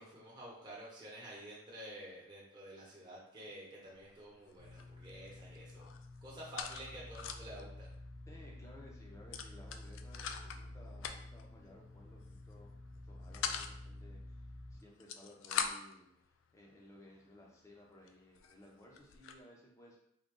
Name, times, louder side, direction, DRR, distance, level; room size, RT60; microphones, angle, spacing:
voice 1, 0.0-5.9 6.2-7.9, right 1 dB, 20° right, -5 dB, 1.1 m, -50 dB
sound 1, 3.9-4.2 4.5-5.3 5.6-7.6 8.0-8.1 8.3-8.6 9.3-10.6 11.0-11.4 12.2-12.5 12.9-13.7 14.8-16.0 16.7-16.8 17.4-17.5 18.1-18.2 18.4-19.4, left 7 dB, 75° left, 0.3 m, -41 dB
sound 2, 4.6-14.8, left 1 dB, 65° right, 0.9 m, -51 dB
voice 2, 8.3-14.5 14.7-20.0, left 1 dB, 15° left, -2 dB, 0.7 m, -58 dB
3.8 x 2.3 x 3.7 m, 0.73 s
head